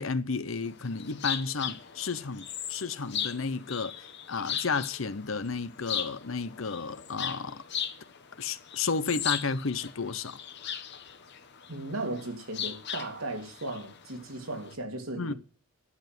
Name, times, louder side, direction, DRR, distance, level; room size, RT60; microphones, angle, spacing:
voice 1, 0.0-7.6 8.4-10.4 15.2-15.3, left 4 dB, 75° left, 0.9 m, -32 dB
sound 1, 0.6-14.7, left 9 dB, 55° left, 1.2 m, -38 dB
voice 2, 11.7-15.3, right 2 dB, 85° right, 3.0 m, -36 dB
11.0 x 7.2 x 9.3 m
head